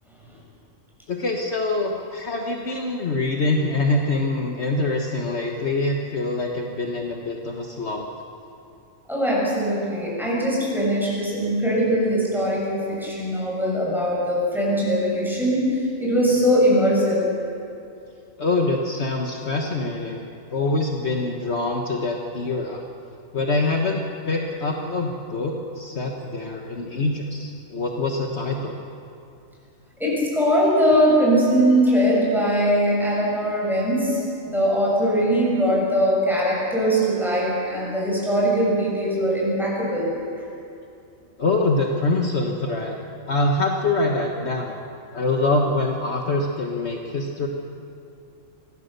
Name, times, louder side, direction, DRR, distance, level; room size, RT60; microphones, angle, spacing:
voice 1, 1.1-8.1 18.4-20.2 20.5-22.8 23.3-28.8 41.4-42.9 43.3-44.8 45.1-47.5, left 2 dB, 55° left, 1 dB, 1.6 m, -24 dB
voice 2, 9.1-15.7 16.0-17.2 30.0-34.2 34.5-40.1, equal, ahead, -5 dB, 6.9 m, -21 dB
24.5 x 16.0 x 6.8 m, 2.6 s
omnidirectional pair, 1.4 m